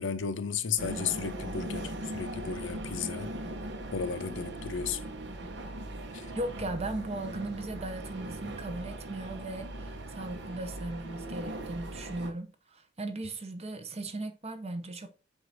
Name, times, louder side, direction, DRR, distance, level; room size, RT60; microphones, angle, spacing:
voice 1, 0.0-3.3 3.9-5.0 6.1-6.3, left 6 dB, 75° left, 0.7 m, -34 dB
sound 1, 0.8-12.3, right 1 dB, 65° right, 1.1 m, -39 dB
voice 2, 6.3-15.2, right 2 dB, 35° right, 0.9 m, -37 dB
7.7 x 2.6 x 5.9 m
head